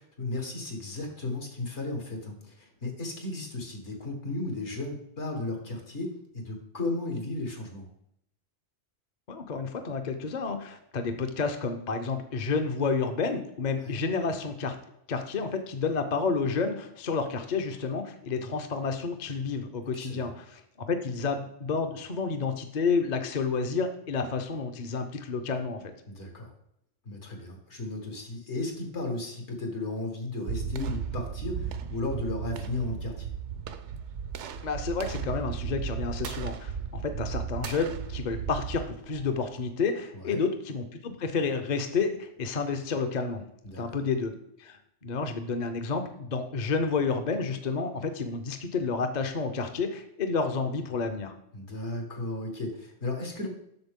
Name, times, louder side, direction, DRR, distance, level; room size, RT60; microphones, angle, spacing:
voice 1, 0.0-7.9 13.8-14.0 19.9-20.3 26.1-26.5 27.1-33.3 40.1-40.4 43.6-44.0 51.5-53.5, left 2 dB, 75° left, 2 dB, 1.9 m, -35 dB
voice 2, 9.3-14.8 15.1-25.8 34.6-43.4 43.8-44.3 44.6-51.3, left 4 dB, 45° left, 6 dB, 0.7 m, -30 dB
sound 1, 30.5-39.6, right 7 dB, 80° right, 0.9 m, -35 dB
7.9 x 6.4 x 3.6 m, 0.77 s
omnidirectional pair, 1.2 m